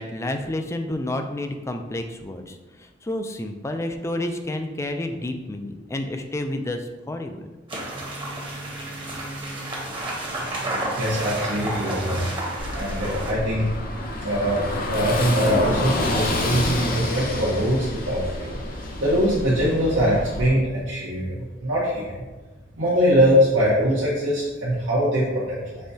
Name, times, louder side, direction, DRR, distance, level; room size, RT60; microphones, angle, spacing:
voice 1, 0.0-7.5, left 1 dB, 15° left, 6 dB, 0.3 m, -30 dB
sound 1, 7.7-13.3, right 1 dB, 25° right, 1.0 m, -31 dB
voice 2, 11.0-12.4 12.7-13.7 14.2-22.2 22.8-25.8, equal, 75° right, -9 dB, 0.9 m, -22 dB
Car passing by / Engine, 12.6-20.5, left 1 dB, 50° left, 0.6 m, -28 dB
5.4 x 3.4 x 2.7 m, 1.2 s
head